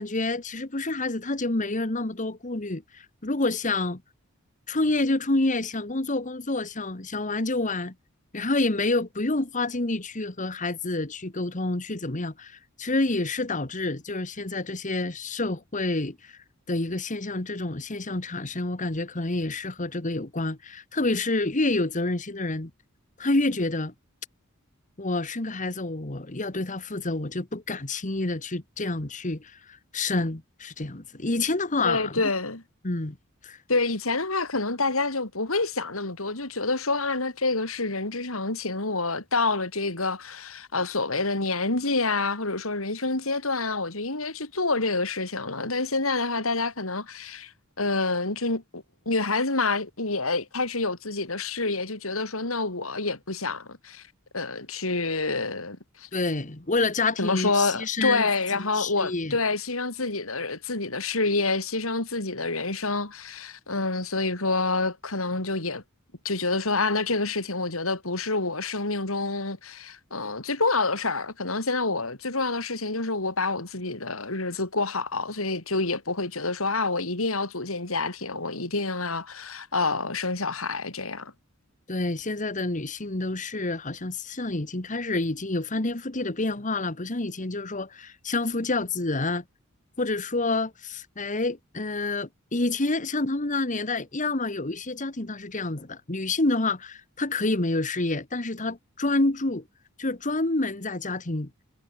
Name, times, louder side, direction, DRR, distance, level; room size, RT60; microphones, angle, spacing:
voice 1, 0.0-4.0 4.7-7.9 8.3-16.4 16.7-22.7 23.2-23.9 25.0-32.2 32.8-33.2 33.4-33.6 56.1-59.3 81.9-89.4 90.0-99.6 100.0-101.5, left 2 dB, 35° left, 1.7 m, -28 dB
voice 2, 31.8-32.6 33.7-47.5 47.8-54.0 54.3-56.1 57.2-65.8 66.2-81.3, left 3 dB, 75° left, 4.2 m, -27 dB
head